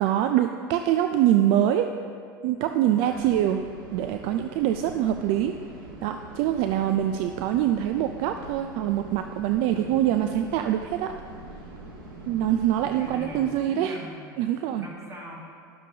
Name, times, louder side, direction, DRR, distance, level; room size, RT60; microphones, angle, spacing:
voice 1, 0.0-1.9 2.4-3.6 3.9-5.5 6.0-11.1 12.3-14.0 14.4-14.9, right 11 dB, 60° right, 7 dB, 0.4 m, -24 dB
voice 2, 2.9-3.3 9.7-10.1 12.2-12.5 12.8-15.4, equal, 25° right, -3 dB, 2.1 m, -43 dB
sound 1, 3.1-13.5, right 2 dB, 85° right, 1.4 m, -43 dB
11.5 x 7.3 x 2.8 m, 2.2 s
hypercardioid pair, 90°, 11 cm